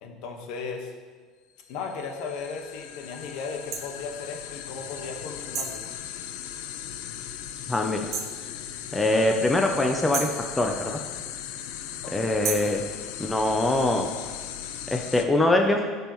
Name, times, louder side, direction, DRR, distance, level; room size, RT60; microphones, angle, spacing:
voice 1, 0.0-0.9 1.7-5.8 12.0-12.3, left 5 dB, 65° left, 2 dB, 1.3 m, -36 dB
sound 1, 1.6-15.2, left 10 dB, 85° left, 0.6 m, -38 dB
sound 2, 3.7-3.9 5.5-5.8 8.1-8.4 10.1-10.4 12.4-12.8, right 6 dB, 40° right, 1.0 m, -31 dB
voice 2, 7.7-8.0 8.9-11.0 12.1-12.8 13.2-14.1 14.9-15.8, left 2 dB, 10° left, 2 dB, 0.5 m, -23 dB
14.0 x 5.5 x 3.1 m, 1.5 s
cardioid pair, 160°, 0 cm